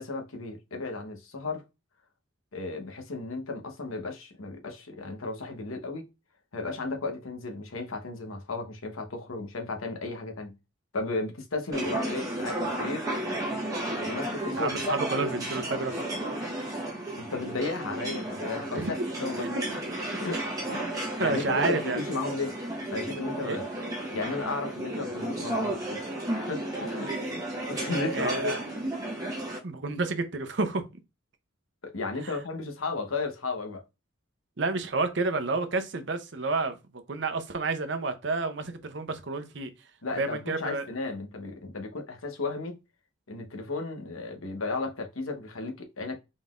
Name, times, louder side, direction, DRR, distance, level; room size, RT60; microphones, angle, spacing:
voice 1, 0.0-1.6 2.5-6.0 6.5-10.6 10.9-13.1 14.0-14.9 17.2-19.5 20.2-22.5 22.9-23.6 24.1-26.0 26.3-27.4 27.7-28.6 31.8-33.8 40.0-42.8 43.3-46.2, left 3 dB, 85° left, 1.0 m, -34 dB
sound 1, 11.7-29.6, right 1 dB, 15° right, 1.1 m, -33 dB
voice 2, 14.6-16.0 18.7-18.9 19.4-19.6 20.7-20.9 21.2-22.0 23.4-23.6 28.1-28.6 29.6-30.8 32.2-32.4 34.6-36.8 37.1-39.7 40.1-40.8, right 3 dB, 60° right, 0.7 m, -30 dB
4.1 x 3.7 x 2.5 m
head